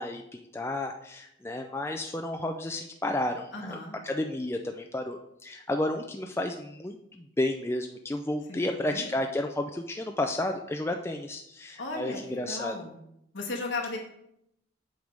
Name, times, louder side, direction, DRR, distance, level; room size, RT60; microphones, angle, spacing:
voice 1, 0.0-3.8 4.0-12.8, left 1 dB, 15° left, 4 dB, 0.3 m, -32 dB
voice 2, 3.5-4.0 8.5-9.1 11.8-13.0 13.3-14.0, left 2 dB, 70° left, 0 dB, 1.5 m, -36 dB
7.8 x 3.5 x 5.2 m, 0.77 s
head